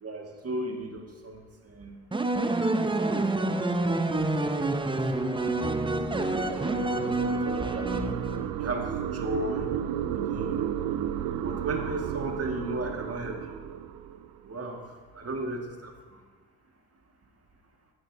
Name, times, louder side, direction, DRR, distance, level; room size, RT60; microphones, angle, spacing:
voice 1, 0.0-2.0 2.6-3.4 4.5-4.8 5.3-8.2 8.6-9.7 10.1-10.8 11.3-13.6 14.4-14.9 15.1-15.9, right 1 dB, 40° right, 2 dB, 2.0 m, -36 dB
sound 1, 2.1-8.8, right 2 dB, 15° right, 0.9 m, -28 dB
sound 2, 4.1-14.6, right 10 dB, 70° right, 0.7 m, -34 dB
15.0 x 9.8 x 2.8 m, 1.5 s
hypercardioid pair, 45°, 38 cm